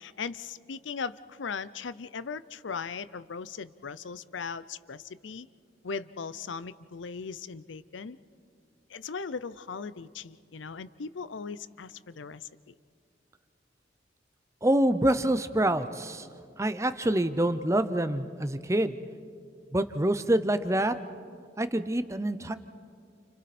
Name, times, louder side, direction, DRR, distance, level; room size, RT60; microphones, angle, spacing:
voice 1, 0.0-5.5 5.8-8.2 8.9-12.7, left 5 dB, 90° left, 16 dB, 0.6 m, -38 dB
voice 2, 14.6-16.3 16.6-19.0 19.7-20.9 21.6-22.6, right 1 dB, 15° right, 11 dB, 0.7 m, -26 dB
30.0 x 29.5 x 4.3 m, 2.3 s
head